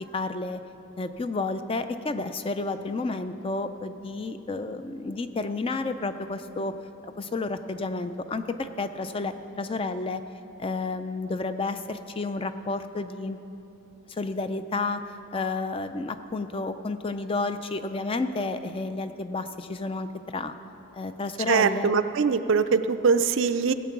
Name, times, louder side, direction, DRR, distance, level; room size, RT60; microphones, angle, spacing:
voice 1, 0.1-0.6 1.0-6.7 7.0-10.2 10.6-13.4 14.1-15.0 15.3-20.1 20.3-20.5 20.9-21.9, left 3 dB, 25° left, 10 dB, 0.4 m, -31 dB
voice 2, 21.5-23.7, right 5 dB, 55° right, 10 dB, 0.4 m, -22 dB
16.5 x 8.3 x 5.9 m, 3.0 s
head